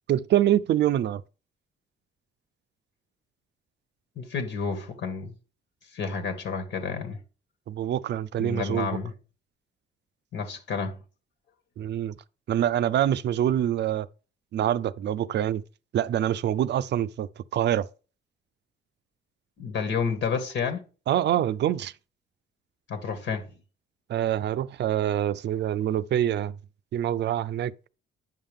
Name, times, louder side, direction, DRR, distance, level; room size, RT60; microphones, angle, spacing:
voice 1, 0.1-1.2 7.7-8.9 11.8-12.1 12.5-14.1 14.5-15.6 15.9-17.9 21.1-21.9 24.1-26.5 26.9-27.7, right 11 dB, 60° right, 0.5 m, -25 dB
voice 2, 4.1-5.3 5.9-7.2 8.4-9.1 10.3-11.0 19.6-20.8 22.9-23.6, left 5 dB, 70° left, 1.7 m, -30 dB
9.5 x 5.7 x 3.6 m
cardioid pair, 90°, 20 cm